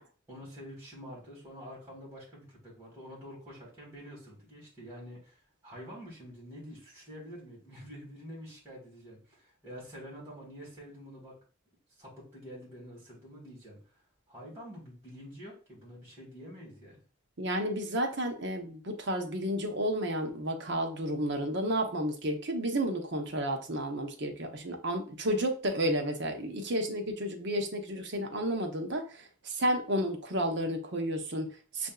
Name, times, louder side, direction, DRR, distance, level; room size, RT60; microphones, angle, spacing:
voice 1, 0.3-11.3 12.0-13.8 14.3-17.0, equal, 15° right, -5 dB, 1.6 m, -47 dB
voice 2, 17.4-31.9, right 1 dB, 55° right, 4 dB, 0.8 m, -32 dB
6.5 x 2.6 x 2.3 m, 0.38 s
head